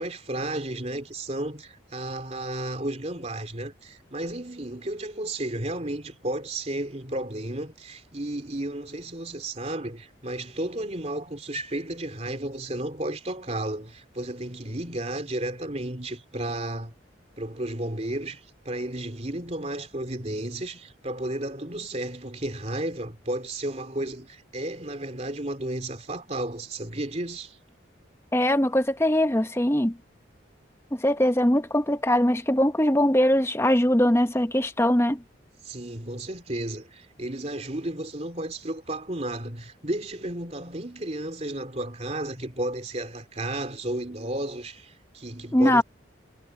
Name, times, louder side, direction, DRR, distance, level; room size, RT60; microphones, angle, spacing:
voice 1, 0.0-16.9 17.4-27.6 35.6-45.8, right 1 dB, 35° right, 3.3 m, -33 dB
voice 2, 28.3-30.0 30.9-35.2 45.5-45.8, left 1 dB, 15° left, 0.8 m, -21 dB
head